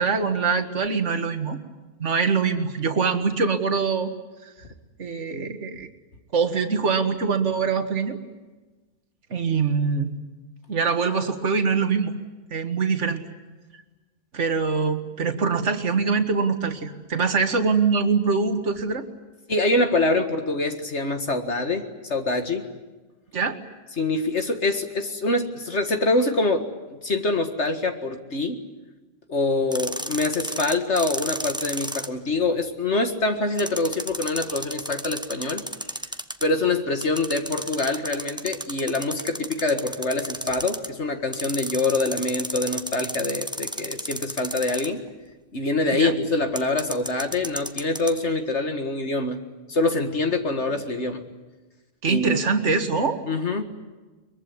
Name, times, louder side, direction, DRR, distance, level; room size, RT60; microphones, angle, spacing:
voice 1, 0.0-1.6 2.0-4.1 5.0-5.9 6.3-8.2 9.3-10.2 10.7-12.1 12.5-13.2 14.3-19.0 23.3-23.6 45.9-46.1 52.0-53.2, right 5 dB, 65° right, 7 dB, 2.1 m, -23 dB
voice 2, 19.5-22.6 24.0-26.7 27.0-28.6 29.3-35.6 36.4-45.0 45.5-49.4 49.7-51.2 52.1-52.4 53.3-53.6, left 2 dB, 60° left, 6 dB, 2.1 m, -25 dB
sound 1, 29.7-32.1 33.6-36.5 37.0-40.9 41.3-45.1 46.6-48.2, right 1 dB, 5° right, 1.0 m, -32 dB
23.0 x 23.0 x 9.7 m, 1.2 s
omnidirectional pair, 1.4 m